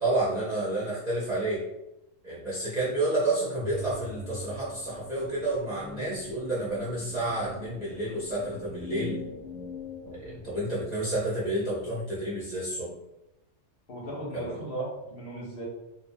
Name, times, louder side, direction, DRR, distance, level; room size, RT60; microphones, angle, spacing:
voice 1, 0.0-1.7 2.2-9.2 10.0-12.9 14.3-14.6, right 2 dB, 45° right, -8 dB, 0.6 m, -30 dB
sound 1, 3.6-11.0, left 1 dB, 5° left, 0.9 m, -42 dB
voice 2, 13.9-15.6, right 1 dB, 55° left, -4 dB, 0.7 m, -36 dB
2.6 x 2.0 x 2.6 m, 0.89 s
omnidirectional pair, 1.3 m